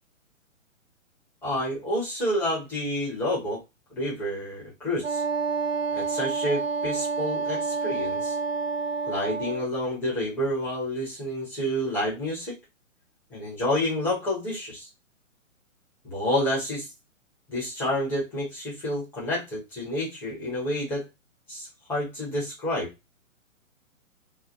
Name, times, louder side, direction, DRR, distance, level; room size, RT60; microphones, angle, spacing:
voice 1, 1.4-3.6 3.9-5.2 5.9-8.4 9.0-12.6 13.3-14.9 16.0-16.9 17.5-21.0 21.5-22.9, left 1 dB, 5° left, -5 dB, 0.6 m, -29 dB
Wind instrument woodwind instrument, 5.0-9.7, right 4 dB, 50° right, 0.6 m, -29 dB
2.3 x 2.2 x 2.6 m, 0.23 s
figure-of-eight pair, 125°, 40 cm